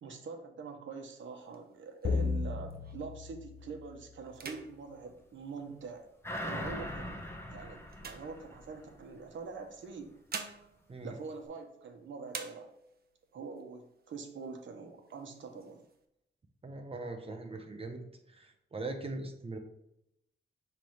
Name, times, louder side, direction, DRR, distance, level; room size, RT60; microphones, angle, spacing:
voice 1, 0.0-6.1 6.4-10.1 11.0-12.7 13.3-15.8, right 4 dB, 85° right, 5 dB, 1.0 m, -45 dB
sound 1, 1.0-3.2 3.7-3.9 4.3-6.2 6.9-9.0 9.9-11.9 12.3-13.1 13.6-13.7 13.9-14.6 15.1-16.0, right 5 dB, 55° right, 0.7 m, -48 dB
sound 2, 2.0-4.5, left 4 dB, 55° left, 0.7 m, -35 dB
sound 3, 6.2-9.1 9.5-9.6, equal, 10° left, 0.8 m, -41 dB
voice 2, 16.6-18.0 18.3-19.6, right 2 dB, 30° right, 4 dB, 0.9 m, -40 dB
5.9 x 3.4 x 4.6 m, 0.80 s
wide cardioid pair, 130°, 19 cm